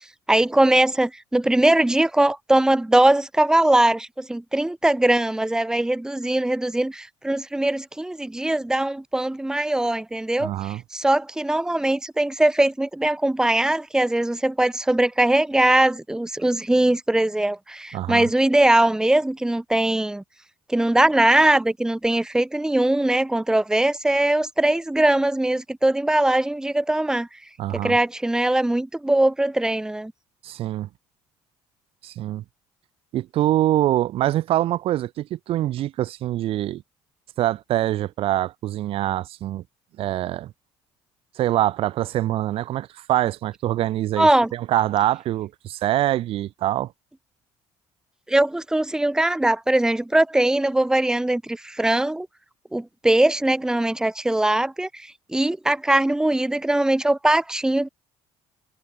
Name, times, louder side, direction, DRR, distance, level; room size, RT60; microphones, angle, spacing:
voice 1, 0.3-20.2 20.7-27.3 27.8-30.1 44.2-44.5 48.3-52.3 52.7-57.9, right 1 dB, 5° right, 3.8 m, -21 dB
voice 2, 10.4-10.8 17.9-18.3 27.6-28.0 30.4-30.9 32.0-32.4 33.1-36.8 37.4-39.6 40.0-40.5 41.4-46.9, right 14 dB, 60° right, 5.2 m, -24 dB
cardioid pair, 135°, 11 cm